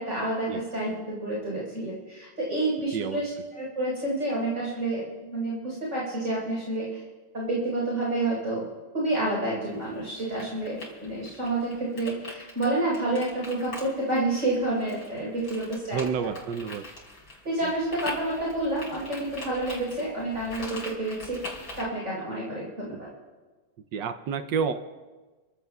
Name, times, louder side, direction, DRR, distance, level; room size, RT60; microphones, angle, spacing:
voice 1, 0.0-7.0 7.3-8.7 8.9-16.3 17.4-21.4 21.8-23.1, right 2 dB, 40° right, -5 dB, 4.8 m, -29 dB
sound 1, 9.7-21.8, left 2 dB, 75° left, 4.4 m, -43 dB
voice 2, 15.9-16.8 17.6-17.7 23.9-24.7, right 6 dB, 70° right, 9 dB, 1.3 m, -29 dB
29.0 x 15.0 x 2.4 m, 1.3 s
omnidirectional pair, 2.1 m